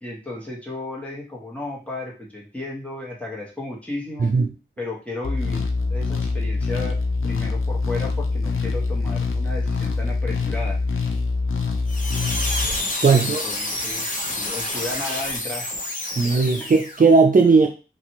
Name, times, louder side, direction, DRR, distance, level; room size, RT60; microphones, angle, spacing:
voice 1, 0.0-4.3 4.8-10.8 13.1-15.7 16.1-16.4, left 2 dB, 5° left, -4 dB, 1.3 m, -34 dB
voice 2, 4.2-4.5 13.0-13.4 16.2-17.7, right 4 dB, 45° right, 2 dB, 0.4 m, -16 dB
sound 1, 5.2-12.8, left 3 dB, 90° left, 0.5 m, -24 dB
sound 2, 11.9-17.1, left 1 dB, 40° left, 0.8 m, -28 dB
3.0 x 2.5 x 2.9 m, 0.33 s
cardioid pair, 40°, 20 cm